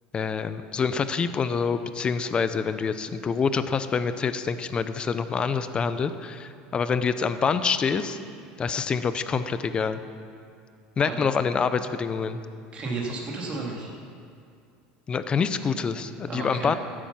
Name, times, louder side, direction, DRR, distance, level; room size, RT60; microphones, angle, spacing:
voice 1, 0.1-8.2 8.6-10.0 11.0-12.4 15.1-16.7, left 5 dB, 30° left, 12 dB, 0.7 m, -26 dB
voice 2, 12.7-13.9 16.3-16.8, right 3 dB, 35° right, -3 dB, 3.2 m, -32 dB
14.5 x 9.9 x 5.8 m, 2.3 s
supercardioid pair, 105°, 3 cm